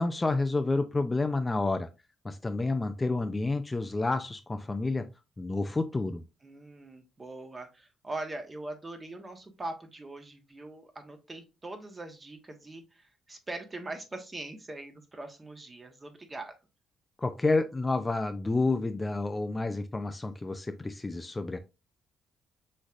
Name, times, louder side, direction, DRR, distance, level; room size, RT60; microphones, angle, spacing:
voice 1, 0.0-1.9 2.2-5.1 5.4-6.2 17.2-21.6, left 3 dB, 20° left, 8 dB, 0.4 m, -29 dB
voice 2, 6.4-16.6, right 2 dB, 25° right, 6 dB, 1.2 m, -42 dB
6.3 x 3.2 x 2.5 m, 0.27 s
cardioid pair, 90°, 0 cm